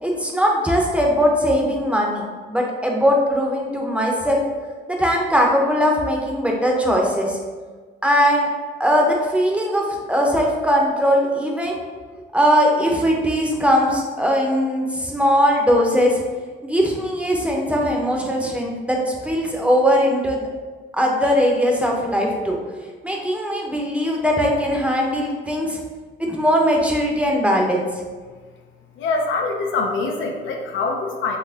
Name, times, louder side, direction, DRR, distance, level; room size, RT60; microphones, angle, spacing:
voice 1, 0.0-4.4 4.9-7.4 8.0-8.5 8.8-11.8 12.3-16.2 16.6-20.4 20.9-22.6 23.0-25.8 26.2-27.9, equal, 5° right, -1 dB, 0.7 m, -20 dB
voice 2, 29.0-31.4, left 3 dB, 80° left, 2 dB, 0.6 m, -24 dB
4.1 x 2.8 x 2.8 m, 1.4 s
cardioid pair, 90°, 20 cm